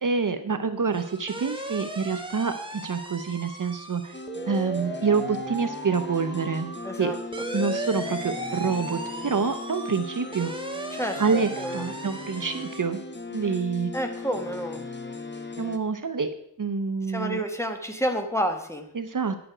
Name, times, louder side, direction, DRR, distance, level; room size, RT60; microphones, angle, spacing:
voice 1, 0.0-4.2 4.5-6.7 7.0-7.1 7.5-10.5 11.2-13.0 13.3-13.9 15.6-16.3 16.6-17.4 18.9-19.4, right 5 dB, 55° right, 10 dB, 0.7 m, -27 dB
sound 1, 0.9-12.8, right 1 dB, 15° right, 1.2 m, -36 dB
sound 2, 4.1-15.8, left 3 dB, 30° left, 1.0 m, -38 dB
voice 2, 6.8-7.2 10.9-11.9 13.9-14.9 17.1-18.9, equal, 5° left, 5 dB, 1.2 m, -29 dB
10.0 x 6.9 x 4.9 m, 0.72 s
wide cardioid pair, 60°, 39 cm